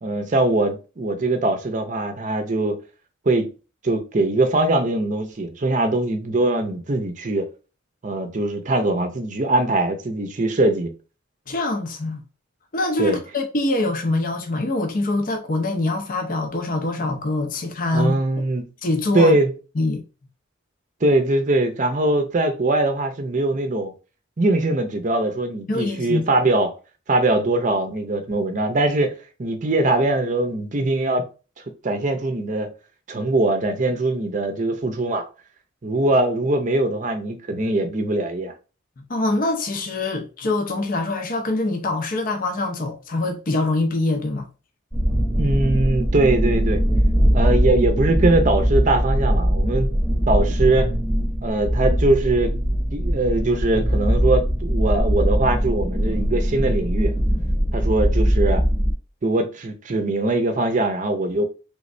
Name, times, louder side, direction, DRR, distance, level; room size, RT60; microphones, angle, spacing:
voice 1, 0.0-2.8 3.3-3.5 3.8-7.5 8.0-10.9 13.0-13.2 17.9-18.7 19.1-19.5 21.0-23.9 24.4-26.7 27.1-29.1 29.4-31.3 31.8-32.7 33.1-35.2 35.8-38.5 45.4-46.8 47.3-49.9 50.3-50.9 51.4-52.6 52.9-57.1 57.7-58.6 59.2-61.4, right 2 dB, 40° right, 0.6 m, -21 dB
voice 2, 11.5-12.2 12.7-18.1 18.8-19.4 19.8-20.0 25.7-26.2 39.1-44.5, left 2 dB, 45° left, 0.6 m, -24 dB
sound 1, 44.9-58.9, equal, ahead, 1.0 m, -21 dB
3.4 x 3.1 x 2.6 m
head